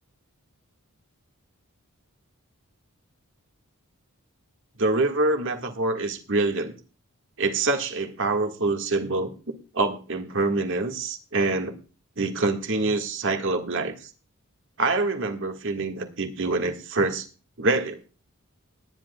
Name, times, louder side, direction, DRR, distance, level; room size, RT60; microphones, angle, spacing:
voice 1, 4.8-6.7 7.4-9.3 9.7-11.7 12.2-14.1 14.8-17.3 17.6-18.0, right 3 dB, 55° right, 5 dB, 1.8 m, -25 dB
20.5 x 10.0 x 2.3 m, 0.36 s
head